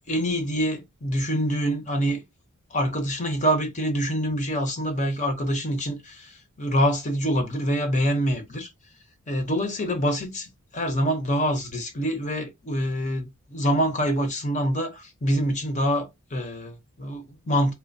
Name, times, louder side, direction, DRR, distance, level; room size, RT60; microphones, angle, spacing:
voice 1, 0.1-2.2 2.7-8.7 9.3-17.7, equal, 35° left, 0.9 m, -26 dB
3.3 x 2.1 x 3.9 m
head